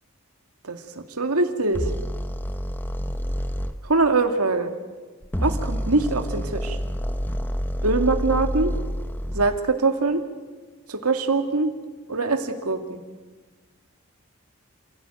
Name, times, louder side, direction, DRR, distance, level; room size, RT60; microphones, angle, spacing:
voice 1, 0.6-1.9 3.8-4.7 5.4-6.8 7.8-8.7 9.3-10.2 10.9-11.7 12.1-13.0, right 3 dB, 90° right, 6 dB, 2.4 m, -23 dB
sound 1, 1.7-3.7 5.2-9.6, equal, 10° left, 1.0 m, -28 dB
28.5 x 16.5 x 9.2 m, 1.3 s
head